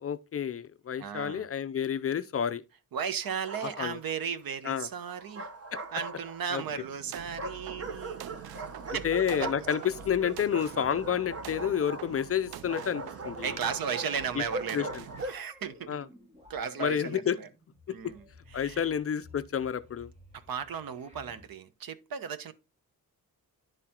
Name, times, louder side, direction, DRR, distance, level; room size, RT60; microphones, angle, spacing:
voice 1, 0.0-2.6 3.8-4.0 4.6-4.9 5.7-5.8 6.5-6.6 9.0-9.8 10.0-13.5 14.4-14.5 14.7-15.0 15.9-16.0 16.8-17.4 18.0-18.1 18.5-20.1, left 8 dB, 40° left, 0.4 m, -30 dB
voice 2, 1.0-1.5 2.9-5.5 5.9-8.6 8.9-9.1 9.3-9.5 13.4-14.9 15.2-15.9 16.5-17.5 17.9-18.8 20.3-22.5, right 7 dB, 70° right, 1.0 m, -35 dB
Bark, 3.2-4.1 5.0-6.6 7.4-15.5, right 2 dB, 40° right, 1.2 m, -40 dB
sound 1, 6.6-15.2, right 12 dB, 85° right, 0.5 m, -47 dB
sound 2, 7.1-21.5, left 2 dB, 20° right, 1.4 m, -54 dB
10.5 x 4.4 x 3.6 m
wide cardioid pair, 155°, 36 cm